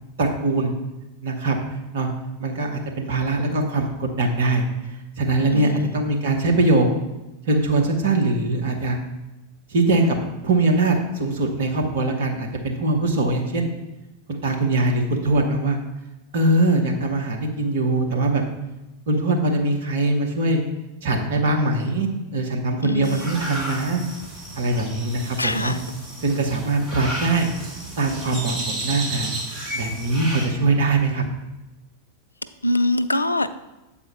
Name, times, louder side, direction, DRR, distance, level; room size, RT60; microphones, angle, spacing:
voice 1, 0.2-0.7 1.2-1.6 1.9-2.1 2.4-4.6 5.2-6.9 7.4-9.0 9.7-10.2 10.4-13.7 14.3-15.8 16.3-18.4 19.1-20.6 21.0-24.0 24.6-25.7 26.2-27.5 28.0-29.3 29.7-31.2, right 2 dB, 60° right, 2 dB, 1.1 m, -22 dB
voice 2, 5.5-5.9 22.8-23.3 25.4-25.8 32.6-33.5, left 1 dB, 80° left, 12 dB, 0.3 m, -23 dB
sound 1, 23.0-30.5, right 1 dB, 25° right, 1.7 m, -33 dB
7.8 x 4.3 x 4.5 m, 1.0 s
figure-of-eight pair, 90°, 0 cm